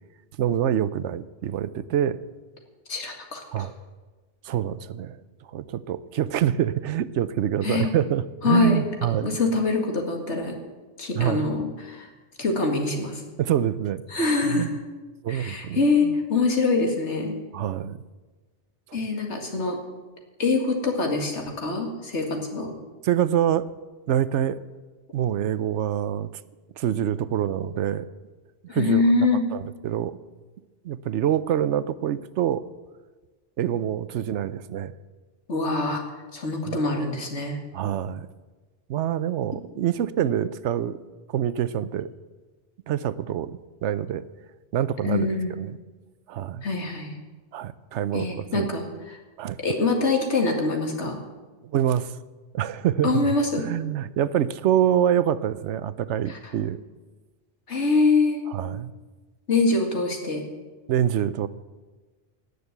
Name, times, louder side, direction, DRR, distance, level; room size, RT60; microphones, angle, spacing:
voice 1, 0.4-2.2 3.5-3.7 4.4-5.2 5.5-9.3 11.1-11.5 13.4-14.0 14.4-14.8 15.2-16.1 17.5-18.0 23.0-23.7 24.1-24.6 25.1-26.3 26.8-28.1 28.7-29.0 29.5-30.2 30.8-32.6 33.6-35.0 36.7-36.8 37.7-38.3 38.9-41.0 41.3-42.1 42.9-44.2 44.7-45.3 45.6-45.8 46.3-46.6 47.5-48.7 49.4-49.6 51.7-52.1 52.5-53.3 53.6-56.8 58.5-58.9 60.9-61.5, right 10 dB, 80° right, 15 dB, 0.9 m, -26 dB
voice 2, 2.9-3.7 7.6-7.9 8.4-8.9 9.2-10.6 11.0-12.1 12.4-13.2 14.1-14.7 15.3-17.3 18.9-19.8 20.4-22.7 28.7-29.4 35.5-36.0 36.3-37.6 45.0-45.5 46.6-47.1 48.1-49.2 49.6-51.2 53.0-53.7 56.3-56.4 57.7-58.4 59.5-60.4, left 3 dB, 75° left, 2 dB, 2.3 m, -24 dB
18.0 x 6.7 x 7.9 m, 1.3 s
omnidirectional pair, 1.2 m